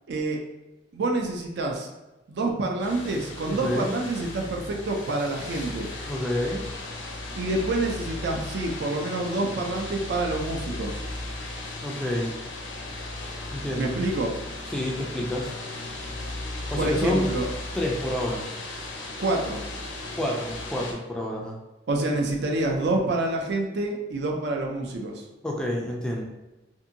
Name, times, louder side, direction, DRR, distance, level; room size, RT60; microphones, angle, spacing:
voice 1, 0.1-0.4 0.9-1.9 2.3-5.9 7.3-11.0 13.8-14.3 16.8-17.5 19.2-19.8 21.9-25.3, right 2 dB, 60° right, 1 dB, 0.4 m, -27 dB
sound 1, 2.8-20.9, left 2 dB, 75° left, 0.5 m, -36 dB
voice 2, 3.5-3.9 6.1-6.6 11.8-12.3 13.5-13.9 14.7-15.5 16.7-17.3 17.7-18.4 20.2-21.6 25.4-26.2, left 1 dB, 5° left, -2 dB, 0.3 m, -28 dB
2.6 x 2.6 x 2.6 m, 1.0 s
head